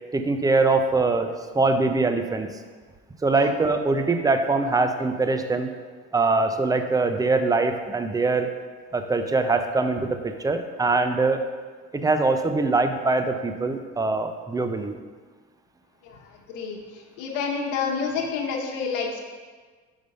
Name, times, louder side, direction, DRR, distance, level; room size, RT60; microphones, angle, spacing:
voice 1, 0.1-1.3 1.5-2.5 3.2-5.7 6.1-8.5 8.9-11.4 12.0-14.9, right 3 dB, 10° right, 7 dB, 0.5 m, -23 dB
voice 2, 17.2-19.2, left 5 dB, 85° left, -1 dB, 1.1 m, -28 dB
5.3 x 5.0 x 5.4 m, 1.5 s
cardioid pair, 100°, 30 cm